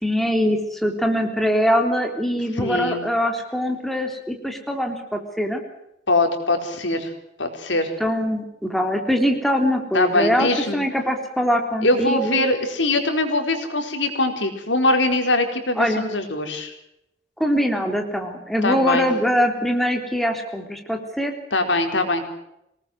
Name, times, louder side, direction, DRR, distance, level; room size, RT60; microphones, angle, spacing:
voice 1, 0.0-5.6 8.0-12.4 15.8-16.0 17.4-21.3, equal, ahead, 3 dB, 3.4 m, -23 dB
voice 2, 2.6-3.0 6.1-7.1 7.4-7.9 9.9-10.8 11.8-16.7 18.6-19.1 21.5-22.3, left 2 dB, 85° left, 5 dB, 4.5 m, -22 dB
25.5 x 19.0 x 6.4 m, 0.82 s
head